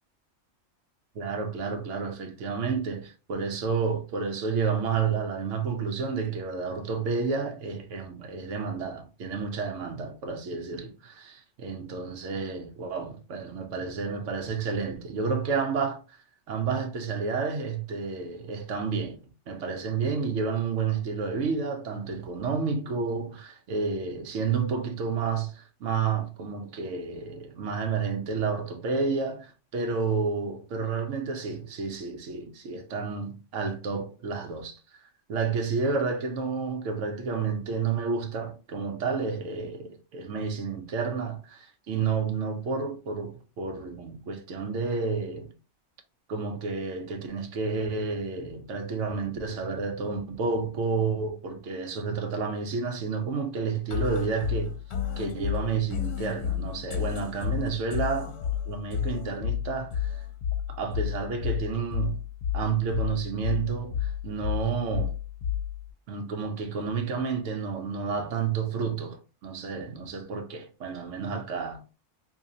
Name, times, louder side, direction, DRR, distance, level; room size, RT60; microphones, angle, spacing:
voice 1, 1.1-19.2 19.5-35.0 35.3-45.5 46.3-54.8 55.2-58.4 58.6-60.3 60.7-62.2 62.5-65.1 66.1-71.8, right 5 dB, 80° right, 1.1 m, -30 dB
sound 1, 53.9-65.9, left 9 dB, 65° left, 0.9 m, -31 dB
2.8 x 2.7 x 3.8 m
omnidirectional pair, 1.3 m